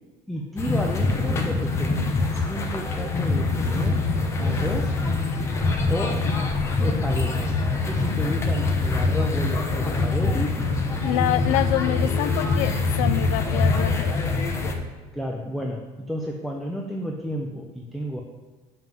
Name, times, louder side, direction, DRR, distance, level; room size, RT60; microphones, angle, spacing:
voice 1, 0.3-4.0 4.4-5.0 5.9-6.3 6.8-10.6 15.1-18.2, equal, ahead, 0 dB, 0.6 m, -32 dB
sound 1, 0.6-14.7, left 3 dB, 20° left, 1.0 m, -24 dB
voice 2, 11.0-14.2, left 13 dB, 90° left, 15 dB, 0.5 m, -26 dB
7.6 x 5.6 x 7.5 m, 1.3 s
cardioid pair, 165°, 13 cm